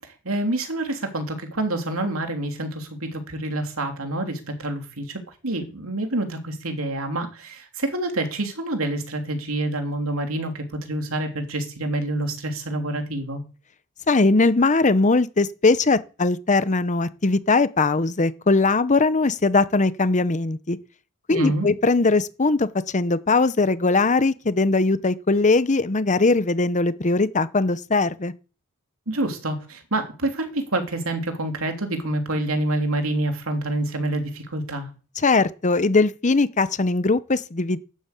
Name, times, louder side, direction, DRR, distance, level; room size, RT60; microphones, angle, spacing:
voice 1, 0.2-13.4 21.3-21.7 29.1-34.9, right 1 dB, 70° right, 3.3 m, -27 dB
voice 2, 14.1-20.8 21.3-22.7 22.9-28.3 35.2-37.8, left 3 dB, 35° left, 0.8 m, -20 dB
12.5 x 11.0 x 8.5 m
head